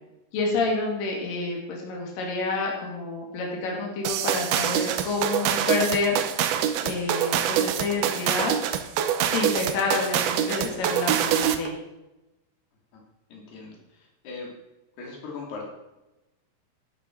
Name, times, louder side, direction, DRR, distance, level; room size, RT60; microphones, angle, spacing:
voice 1, 0.3-6.2 6.8-8.6 9.2-11.8, left 3 dB, 60° left, -1 dB, 3.9 m, -28 dB
sound 1, 4.1-11.7, right 10 dB, 75° right, 2.7 m, -25 dB
voice 2, 13.3-13.8 14.2-14.5 15.0-15.7, left 4 dB, 85° left, -1 dB, 4.7 m, -38 dB
11.5 x 11.5 x 4.5 m, 1.0 s
omnidirectional pair, 4.5 m